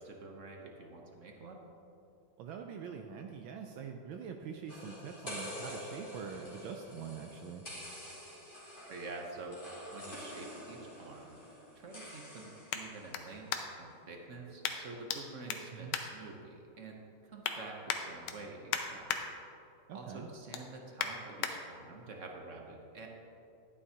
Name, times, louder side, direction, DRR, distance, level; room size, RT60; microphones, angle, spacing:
voice 1, 0.0-1.6 8.9-9.6 9.9-11.4 11.7-13.5 13.8-19.2 19.9-23.1, right 3 dB, 55° right, 1 dB, 0.9 m, -48 dB
voice 2, 2.4-7.7 15.7-15.9 19.9-20.3, right 6 dB, 75° right, 3 dB, 1.3 m, -44 dB
sound 1, 4.7-13.4, equal, 25° left, 2.1 m, -47 dB
sound 2, 10.7-14.0 14.6-15.2 15.5-16.8 17.1-17.6 17.9-19.2 19.6-19.9 20.2-21.5 22.1-22.2, left 8 dB, 90° left, 1.6 m, -39 dB
12.0 x 9.9 x 2.8 m, 2.8 s
omnidirectional pair, 2.3 m